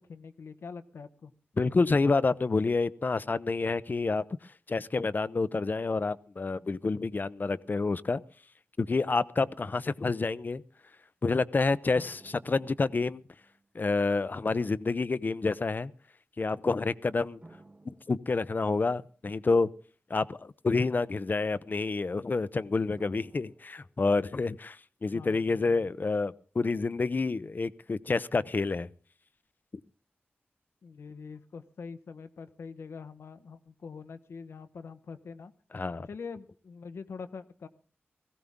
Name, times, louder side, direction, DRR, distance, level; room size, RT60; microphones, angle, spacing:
voice 1, 0.1-1.3 25.1-25.9 30.8-35.5 36.1-37.7, left 5 dB, 85° left, 1.0 m, -44 dB
voice 2, 1.6-4.2 4.7-8.2 8.8-10.6 11.2-13.2 13.7-15.9 16.4-17.4 18.1-19.7 20.1-24.8 25.0-28.9 35.7-36.1, left 3 dB, 45° left, 0.6 m, -28 dB
sound 1, 11.9-13.7 14.6-14.7 17.4-19.1 23.0-24.3, right 2 dB, 35° right, 2.5 m, -56 dB
18.0 x 15.5 x 3.6 m
cardioid pair, 55°, 4 cm